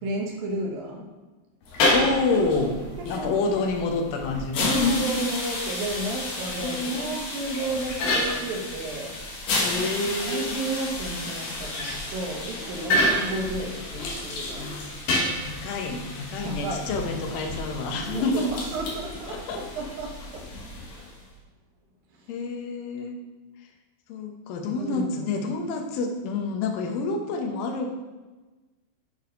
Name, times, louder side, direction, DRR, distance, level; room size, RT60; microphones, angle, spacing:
voice 1, 0.0-1.1 3.0-3.3 4.6-9.3 9.7-9.9 10.3-14.6 16.4-16.9 18.1-20.5 22.3-22.4 24.8-25.4, right 2 dB, 70° right, 0 dB, 2.4 m, -32 dB
sound 1, 1.6-21.2, left 1 dB, 60° left, 2.3 m, -30 dB
voice 2, 1.9-2.8 3.1-5.0 6.6-7.2 9.6-10.6 14.6-14.9 15.4-18.5 19.3-19.6 22.3-23.2 24.1-27.9, left 3 dB, 80° left, 3 dB, 2.0 m, -28 dB
8.9 x 4.5 x 5.3 m, 1.2 s
omnidirectional pair, 5.2 m